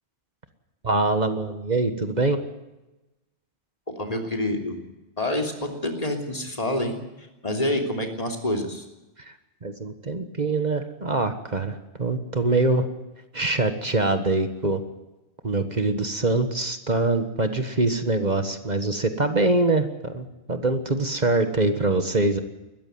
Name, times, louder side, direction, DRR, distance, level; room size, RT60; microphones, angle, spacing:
voice 1, 0.8-2.4 9.6-12.9 13.3-14.8 15.4-22.4, right 2 dB, 40° right, 8 dB, 1.6 m, -24 dB
voice 2, 3.9-4.8 5.2-8.8, left 1 dB, 35° left, 3 dB, 3.2 m, -27 dB
21.0 x 14.0 x 9.5 m, 1.0 s
omnidirectional pair, 1.2 m